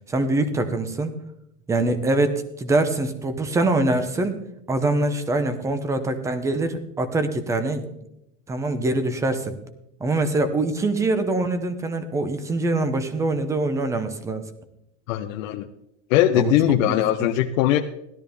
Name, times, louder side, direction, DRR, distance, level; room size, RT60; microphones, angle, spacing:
voice 1, 0.1-1.1 1.7-4.4 4.7-7.9 8.5-9.6 10.0-14.4 16.3-16.5 16.9-17.3, right 2 dB, 10° right, 10 dB, 0.6 m, -24 dB
voice 2, 15.1-15.7 16.1-17.8, left 12 dB, 75° left, 4 dB, 0.9 m, -20 dB
16.5 x 12.5 x 3.4 m, 0.83 s
supercardioid pair, 175°, 39 cm